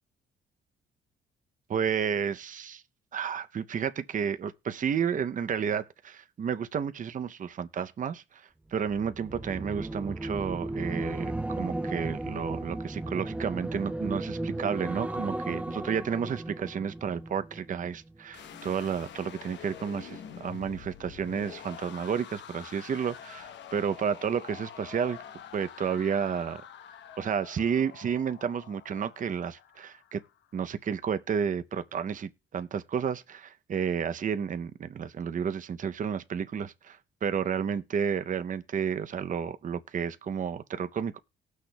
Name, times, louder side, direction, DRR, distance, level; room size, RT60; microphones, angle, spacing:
voice 1, 1.7-2.8 3.1-25.2 25.5-26.6 27.2-30.2 30.5-41.2, right 7 dB, 40° right, 0.7 m, -31 dB
sound 1, 8.9-18.2 18.5-18.9, right 1 dB, 5° right, 0.4 m, -35 dB
sound 2, 18.3-30.4, left 9 dB, 65° left, 0.9 m, -46 dB
18.5 x 6.4 x 2.3 m
cardioid pair, 90°, 20 cm